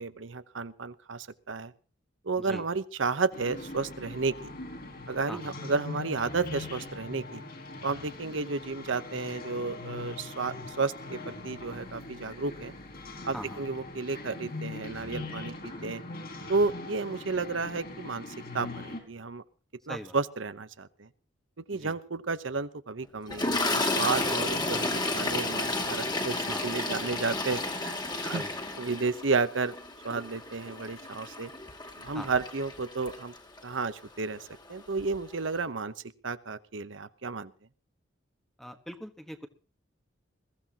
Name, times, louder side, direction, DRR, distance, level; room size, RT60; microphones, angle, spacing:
voice 1, 0.0-1.7 2.2-4.5 5.1-7.4 7.8-12.7 13.2-16.0 16.5-18.3 18.5-19.4 19.9-21.1 21.7-27.9 28.2-28.4 28.8-29.7 30.0-31.5 32.0-33.3 33.6-35.9 36.2-37.5, right 4 dB, 80° right, 12 dB, 1.0 m, -32 dB
sound 1, 3.3-19.0, left 2 dB, 50° left, 4.4 m, -41 dB
Toilet flush, 23.3-33.6 34.5-34.7 35.0-35.2, left 2 dB, 20° left, 2.5 m, -32 dB
voice 2, 38.6-39.5, equal, ahead, 7 dB, 1.3 m, -41 dB
21.5 x 15.0 x 3.0 m, 0.36 s
head